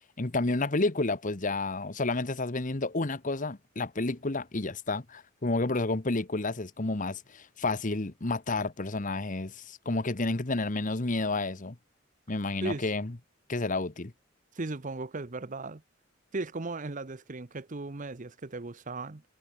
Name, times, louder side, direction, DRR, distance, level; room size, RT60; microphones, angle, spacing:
voice 1, 0.2-11.7 12.3-13.1 13.5-14.1, left 2 dB, 40° left, 1.2 m, -30 dB
voice 2, 14.5-15.8 16.3-19.2, right 3 dB, 40° right, 0.9 m, -36 dB
head